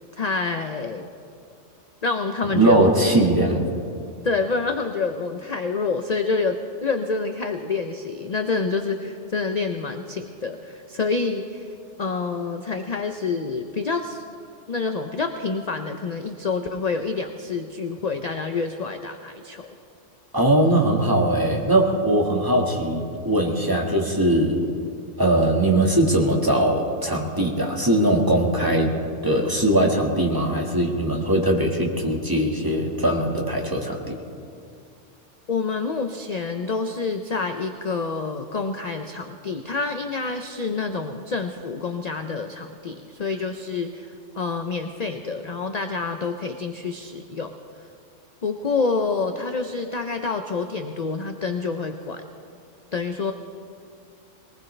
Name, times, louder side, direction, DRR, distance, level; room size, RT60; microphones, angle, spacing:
voice 1, 0.1-1.1 2.0-2.9 4.2-14.2 14.7-19.7 35.5-47.5 48.4-52.3 52.9-53.3, left 4 dB, 40° left, 6 dB, 0.6 m, -27 dB
voice 2, 2.5-3.6 20.3-24.6 25.2-28.9 29.2-34.2, right 1 dB, 15° right, -1 dB, 1.7 m, -20 dB
21.5 x 19.5 x 3.3 m, 2.4 s
omnidirectional pair, 1.3 m